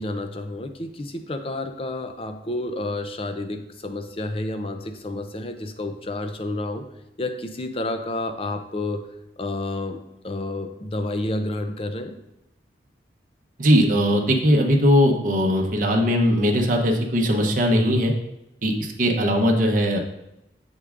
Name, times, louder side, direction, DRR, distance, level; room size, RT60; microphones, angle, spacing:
voice 1, 0.0-6.8 7.2-9.0 9.4-12.2, left 2 dB, 30° left, 6 dB, 0.6 m, -30 dB
voice 2, 13.6-18.1 18.6-20.0, equal, 50° right, 1 dB, 0.9 m, -19 dB
7.4 x 6.5 x 2.5 m, 0.87 s
head